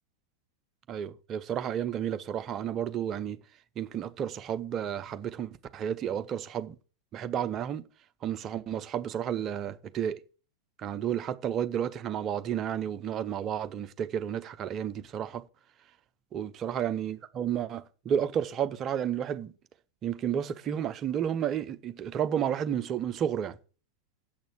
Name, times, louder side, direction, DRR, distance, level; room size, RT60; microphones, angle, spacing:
voice 1, 0.9-3.4 3.8-6.8 7.1-7.9 8.2-10.2 10.8-15.4 16.3-19.5 20.0-23.6, right 9 dB, 30° right, 0.7 m, -32 dB
7.9 x 6.4 x 6.6 m
figure-of-eight pair, 90°, 0 cm